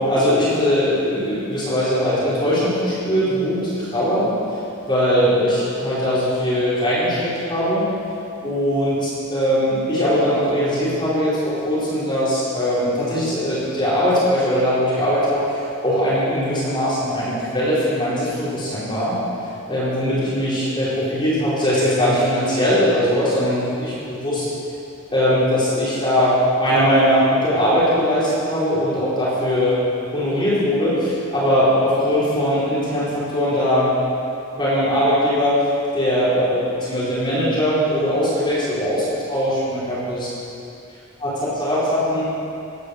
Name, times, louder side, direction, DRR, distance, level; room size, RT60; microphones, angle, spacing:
voice 1, 0.0-4.3 4.9-7.8 8.4-19.1 19.7-24.5 25.1-29.8 30.1-33.9 34.5-35.6 35.9-40.3 41.2-42.3, equal, 20° left, -11 dB, 4.7 m, -20 dB
16.0 x 11.0 x 6.7 m, 2.7 s
head